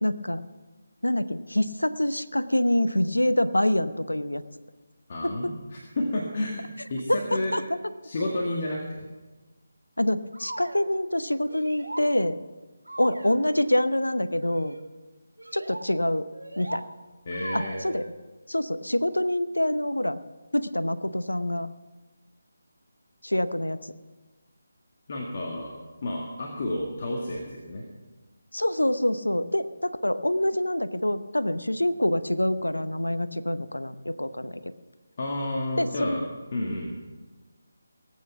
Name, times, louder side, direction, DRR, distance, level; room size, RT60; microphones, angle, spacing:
voice 1, 0.0-0.4 1.0-4.4 5.2-5.3 7.1-7.6 10.0-12.4 13.0-14.8 15.5-16.3 16.6-16.8 17.5-18.0 18.5-20.2 20.5-21.7 23.2-23.9 28.5-34.7 35.8-36.3, left 1 dB, 85° left, 12 dB, 0.8 m, -26 dB
voice 2, 5.1-7.6 8.0-9.1 17.3-17.8 25.1-25.7 26.0-27.8 35.2-36.2 36.5-36.9, left 1 dB, 40° left, -1 dB, 1.9 m, -31 dB
sound 1, 10.3-10.9 11.5-12.1 12.8-13.4 14.4-14.8 15.4-15.8 16.3-16.8 17.3-18.1, right 1 dB, 80° right, 1.4 m, -39 dB
19.0 x 8.5 x 5.9 m, 1.3 s
figure-of-eight pair, 155°, 0 cm